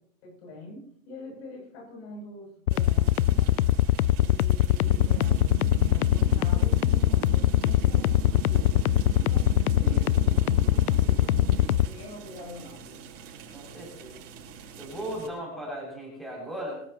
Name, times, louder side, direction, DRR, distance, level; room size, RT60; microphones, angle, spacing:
voice 1, 0.2-3.6 4.2-8.1 8.5-8.9 9.8-10.8 11.0-13.1, left 1 dB, 50° left, 0 dB, 7.7 m, -44 dB
sound 1, 2.7-11.9, left 13 dB, 85° left, 0.6 m, -21 dB
sound 2, 2.7-15.3, right 6 dB, 35° right, 7.4 m, -46 dB
sound 3, 4.8-11.8, right 9 dB, 75° right, 1.7 m, -38 dB
voice 2, 13.5-14.2 14.7-16.8, right 1 dB, ahead, -4 dB, 6.5 m, -37 dB
25.5 x 13.5 x 3.0 m, 0.67 s
supercardioid pair, 160°, 43 cm